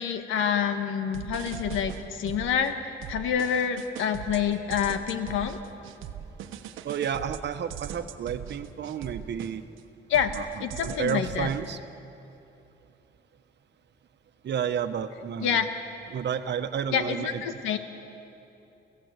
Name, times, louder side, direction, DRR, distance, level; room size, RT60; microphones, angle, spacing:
voice 1, 0.0-5.6 10.1-10.3 10.6-11.5 15.4-15.7 16.9-17.8, left 8 dB, 90° left, 7 dB, 1.6 m, -27 dB
sound 1, 1.1-2.7 3.0-9.8 10.1-11.7, right 9 dB, 85° right, 1.2 m, -40 dB
voice 2, 6.8-9.7 10.3-11.8 14.4-15.6 16.1-17.6, right 8 dB, 60° right, 9 dB, 1.3 m, -31 dB
29.5 x 16.0 x 8.2 m, 2.8 s
cardioid pair, 90°, 20 cm